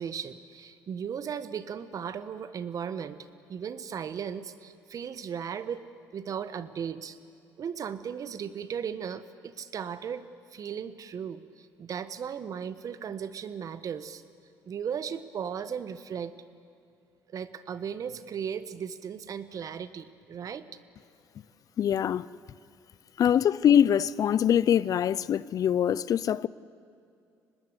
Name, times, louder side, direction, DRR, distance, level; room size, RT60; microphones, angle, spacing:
voice 1, 0.0-3.2 3.5-5.9 6.1-7.2 7.6-14.2 14.6-16.3 17.3-20.6, right 7 dB, 50° right, 1.2 m, -36 dB
voice 2, 21.8-22.2 23.2-26.5, left 9 dB, 50° left, 0.5 m, -23 dB
24.5 x 20.0 x 8.1 m
supercardioid pair, 75°, 8 cm